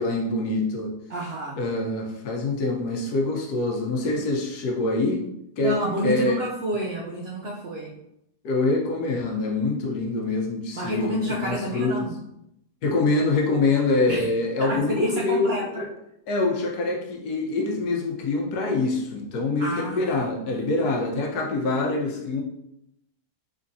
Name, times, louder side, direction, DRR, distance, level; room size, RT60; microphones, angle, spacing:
voice 1, 0.0-0.9 1.6-5.2 5.6-6.4 8.4-12.1 12.8-15.9 16.3-22.4, left 2 dB, 85° left, 1 dB, 1.3 m, -25 dB
voice 2, 1.1-1.6 5.6-8.0 10.7-12.1 14.1-14.2 14.6-15.9 19.6-20.1 20.4-20.7, equal, 70° right, -3 dB, 0.6 m, -29 dB
3.7 x 3.3 x 2.6 m, 0.79 s
omnidirectional pair, 1.6 m